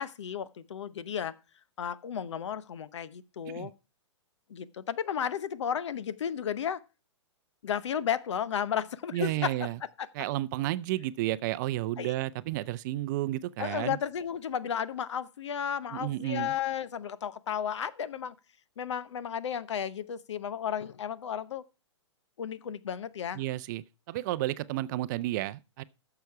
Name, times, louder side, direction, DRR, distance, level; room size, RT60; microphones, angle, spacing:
voice 1, 0.0-1.3 1.8-3.7 4.5-6.8 7.6-9.5 12.0-12.1 13.6-18.3 18.8-21.6 22.4-23.4, left 8 dB, 70° left, 0.8 m, -33 dB
voice 2, 9.1-9.8 10.1-14.0 15.9-16.5 23.3-25.8, right 15 dB, 40° right, 0.5 m, -32 dB
12.0 x 6.9 x 4.6 m
hypercardioid pair, 130°, 16 cm